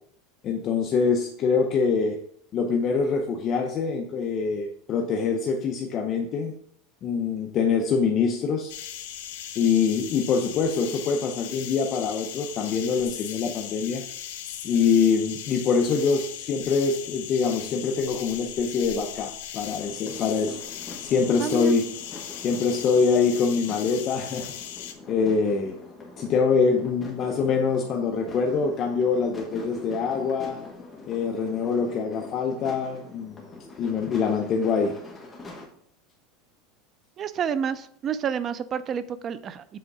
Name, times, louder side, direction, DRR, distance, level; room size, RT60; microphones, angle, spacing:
voice 1, 0.4-2.2 2.5-6.5 7.0-8.7 9.6-14.0 14.6-20.6 21.0-21.9 22.4-24.5 25.1-25.7 26.2-30.6 31.1-33.4 33.8-34.9, left 5 dB, 35° left, 2 dB, 0.7 m, -24 dB
sound 1, 8.7-24.9, left 10 dB, 90° left, 1.0 m, -38 dB
sound 2, 19.7-35.7, left 2 dB, 10° left, 1.3 m, -44 dB
voice 2, 21.4-21.7 37.2-39.6, right 7 dB, 30° right, 14 dB, 0.4 m, -29 dB
7.8 x 3.7 x 4.8 m, 0.64 s
supercardioid pair, 155°, 0 cm